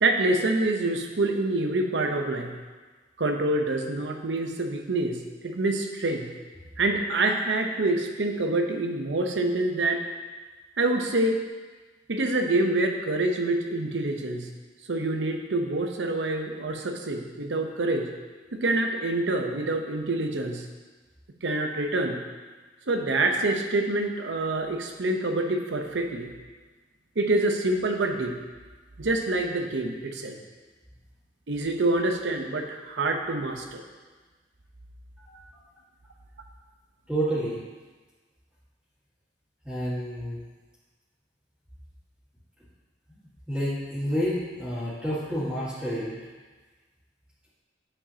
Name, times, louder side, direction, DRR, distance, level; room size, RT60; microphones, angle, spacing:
voice 1, 0.0-2.6 3.2-6.3 6.8-10.0 10.8-11.4 12.1-14.5 14.9-18.1 18.5-20.7 21.4-22.2 22.9-26.3 27.2-28.4 29.0-30.4 31.5-33.8, right 2 dB, 85° right, 4 dB, 0.8 m, -26 dB
voice 2, 37.1-37.6 39.6-40.4 43.5-46.1, equal, 5° right, -12 dB, 1.8 m, -29 dB
8.9 x 7.3 x 2.8 m, 1.3 s
head